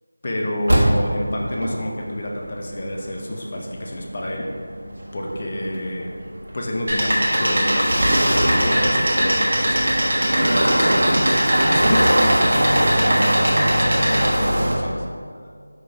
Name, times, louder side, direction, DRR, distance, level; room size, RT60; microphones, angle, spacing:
voice 1, 0.2-4.5 5.1-6.2 6.5-15.0, left 1 dB, 25° left, -1 dB, 0.6 m, -29 dB
sound 1, 0.7-14.8, right 1 dB, 65° right, 1.4 m, -22 dB
sound 2, 6.9-14.3, equal, 45° right, 1.1 m, -22 dB
5.8 x 3.2 x 5.1 m, 2.1 s
figure-of-eight pair, 180°, 0 cm